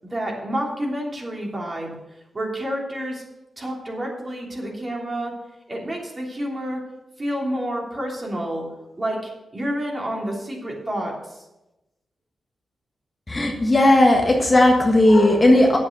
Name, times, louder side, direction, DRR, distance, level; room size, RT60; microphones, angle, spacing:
voice 1, 0.1-1.9 2.3-3.2 3.6-5.3 5.7-6.8 7.2-8.7 9.0-11.4, equal, 30° right, -2 dB, 3.2 m, -29 dB
voice 2, 13.3-15.8, left 1 dB, 25° left, 1 dB, 1.5 m, -16 dB
9.4 x 7.5 x 6.6 m, 0.99 s
cardioid pair, 95°, 0 cm